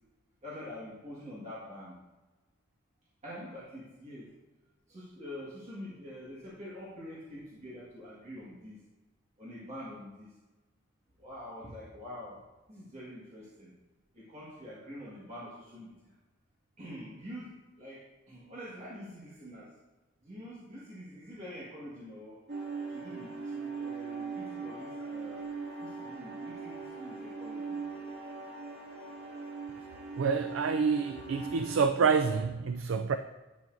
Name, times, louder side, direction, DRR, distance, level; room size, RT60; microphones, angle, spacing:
voice 1, 0.4-2.0 3.2-4.3 4.9-8.8 9.4-10.3 11.2-12.4 12.7-13.7 14.1-16.1 16.8-19.7 20.2-22.4 22.9-28.0, equal, 35° right, -7 dB, 1.7 m, -46 dB
sound 1, 22.5-31.8, right 4 dB, 60° right, 2.1 m, -40 dB
voice 2, 30.2-33.2, right 5 dB, 90° right, 9 dB, 0.4 m, -27 dB
10.5 x 6.9 x 2.6 m, 1.2 s
head